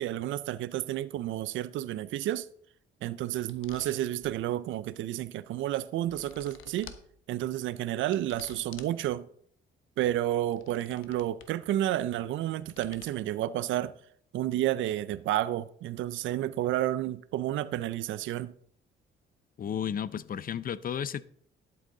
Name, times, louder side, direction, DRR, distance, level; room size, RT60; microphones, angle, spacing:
voice 1, 0.0-2.5 3.0-6.9 7.3-9.3 10.0-14.0 14.3-18.5, right 13 dB, 75° right, 0.5 m, -31 dB
sound 1, 3.5-4.3 5.8-7.0 8.1-9.0 10.3-11.5 12.7-13.1, left 8 dB, 85° left, 1.0 m, -51 dB
voice 2, 19.6-21.2, left 8 dB, 45° left, 0.6 m, -33 dB
12.0 x 7.8 x 3.8 m
cardioid pair, 90°, 20 cm